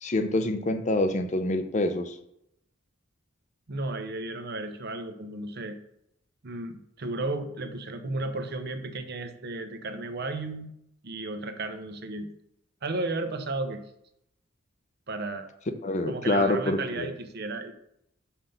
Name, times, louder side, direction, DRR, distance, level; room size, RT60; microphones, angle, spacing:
voice 1, 0.0-2.1 15.8-17.1, left 2 dB, 35° left, 9 dB, 0.6 m, -26 dB
voice 2, 3.7-5.8 6.4-10.7 11.0-12.3 12.8-13.8 15.1-15.5 16.1-17.8, right 2 dB, 50° right, 8 dB, 0.8 m, -33 dB
5.8 x 5.1 x 5.6 m, 0.77 s
head